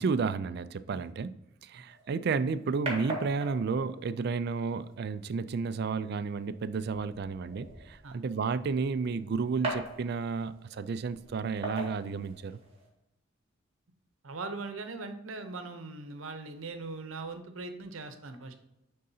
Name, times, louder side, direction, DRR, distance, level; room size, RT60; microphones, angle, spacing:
voice 1, 0.0-12.6, right 5 dB, 55° right, 0.3 m, -32 dB
sound 1, 1.9-12.9, right 2 dB, 30° right, 2.1 m, -42 dB
voice 2, 14.2-18.5, right 3 dB, 85° right, 0.8 m, -40 dB
9.4 x 3.8 x 2.8 m
head